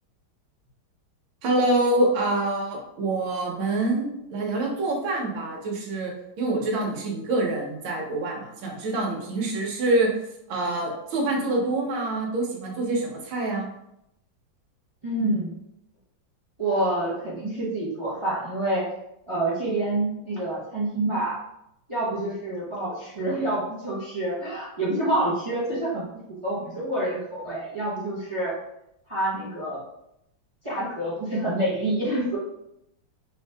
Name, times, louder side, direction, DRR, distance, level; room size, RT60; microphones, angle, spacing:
voice 1, 1.4-6.1 6.4-10.1 10.5-13.7, right 2 dB, 85° right, -1 dB, 1.7 m, -26 dB
voice 2, 15.0-15.5 16.6-18.9 19.3-21.4 21.9-28.6 29.1-29.8 30.6-32.4, right 1 dB, 50° right, -7 dB, 0.3 m, -27 dB
3.9 x 2.7 x 3.3 m, 0.80 s
omnidirectional pair, 2.2 m